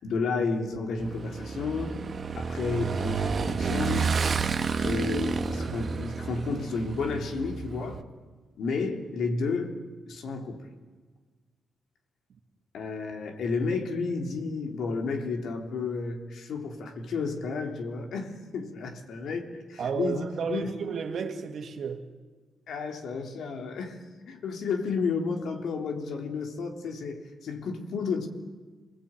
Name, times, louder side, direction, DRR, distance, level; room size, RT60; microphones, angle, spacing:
voice 1, 0.0-1.9 2.3-4.1 4.8-8.0 8.6-9.7 10.1-10.6 12.7-20.7 22.7-24.0 24.3-28.3, left 4 dB, 70° left, 3.4 m, -31 dB
Motorcycle / Engine, 1.0-8.0, right 5 dB, 40° right, 1.6 m, -30 dB
voice 2, 19.8-22.0, right 6 dB, 60° right, 2.6 m, -32 dB
28.5 x 20.0 x 9.0 m
cardioid pair, 135°, 0 cm